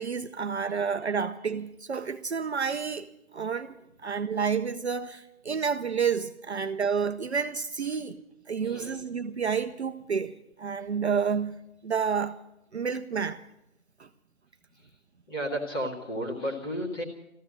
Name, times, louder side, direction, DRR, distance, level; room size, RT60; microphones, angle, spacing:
voice 1, 0.0-3.1 3.3-8.2 8.5-12.4 12.7-13.4 14.0-14.1, right 6 dB, 50° right, 0.7 m, -30 dB
voice 2, 8.6-9.0 14.7-14.9 15.3-17.0, equal, 15° left, 1.9 m, -33 dB
14.5 x 12.5 x 7.6 m
figure-of-eight pair, 165°, 42 cm